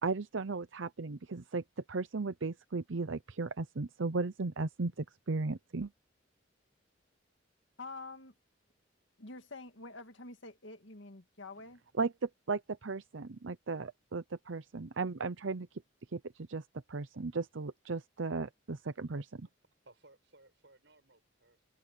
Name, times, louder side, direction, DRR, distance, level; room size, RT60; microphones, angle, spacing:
voice 1, 0.0-5.9 12.0-15.8 16.1-19.5, right 3 dB, 85° right, 0.7 m, -36 dB
voice 2, 7.8-8.3 9.2-11.8, left 3 dB, 80° left, 2.1 m, -47 dB
voice 3, 19.8-21.7, right 2 dB, 65° right, 7.6 m, -62 dB
open air
head